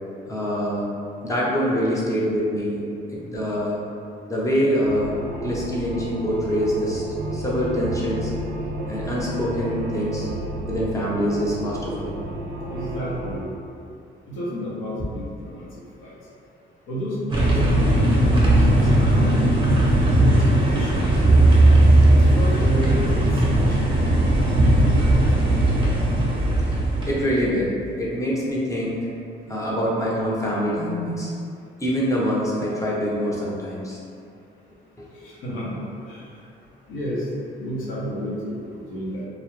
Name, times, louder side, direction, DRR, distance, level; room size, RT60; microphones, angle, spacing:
voice 1, 0.3-0.9 1.2-2.8 3.1-3.8 4.3-5.1 5.4-7.0 7.3-8.3 8.9-10.3 10.7-12.1 26.7-26.8 27.1-29.0 29.5-31.3 31.8-34.0 35.0-35.1, equal, 15° left, -6 dB, 0.6 m, -25 dB
sound 1, 4.8-13.4, right 1 dB, 70° right, 0.4 m, -31 dB
voice 2, 12.7-13.5 14.3-15.7 16.0-16.1 16.9-21.1 22.1-23.8 35.2-36.2 36.9-37.3 37.6-39.3, equal, 90° left, -6 dB, 0.7 m, -31 dB
sound 2, 17.3-27.2, right 1 dB, 25° right, 0.6 m, -17 dB
2.3 x 2.0 x 3.0 m, 2.5 s
cardioid pair, 90°, 20 cm